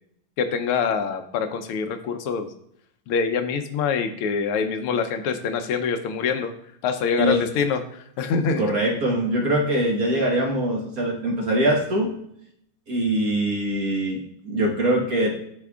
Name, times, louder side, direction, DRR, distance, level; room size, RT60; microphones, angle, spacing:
voice 1, 0.4-2.5 3.1-6.5 6.8-8.6, left 6 dB, 85° left, 7 dB, 1.6 m, -25 dB
voice 2, 8.6-12.1 12.9-15.4, right 1 dB, 45° right, -1 dB, 1.5 m, -23 dB
12.0 x 4.4 x 2.4 m, 0.72 s
omnidirectional pair, 2.4 m